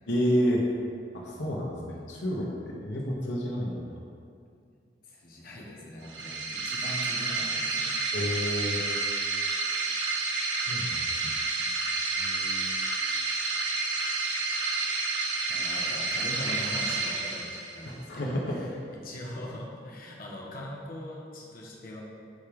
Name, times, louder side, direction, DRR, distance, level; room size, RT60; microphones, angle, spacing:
voice 1, 0.1-0.6 1.1-4.0 8.1-8.8 10.7-11.7 12.2-12.8 17.8-18.7, equal, 75° left, -3 dB, 1.1 m, -30 dB
voice 2, 5.0-8.0 15.5-18.7 19.0-22.0, left 1 dB, 55° left, -3 dB, 1.2 m, -41 dB
sound 1, 6.0-18.0, right 3 dB, 85° right, 1.1 m, -30 dB
9.5 x 3.6 x 5.2 m, 2.3 s
head